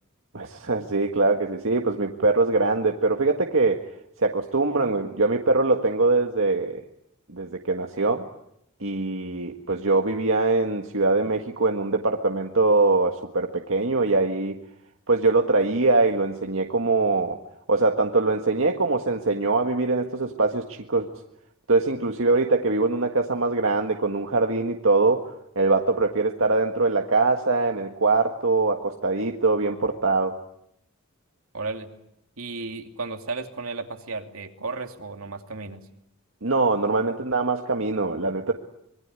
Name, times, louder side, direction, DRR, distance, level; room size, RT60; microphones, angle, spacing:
voice 1, 0.3-3.8 4.2-6.8 7.3-8.3 8.8-14.6 15.1-17.4 17.7-21.1 21.7-25.2 25.6-30.4 36.4-38.5, right 3 dB, 70° right, 3 dB, 1.7 m, -23 dB
voice 2, 31.5-31.9 32.4-35.8, right 3 dB, 85° right, 5 dB, 2.8 m, -34 dB
26.0 x 22.0 x 9.7 m, 0.77 s
head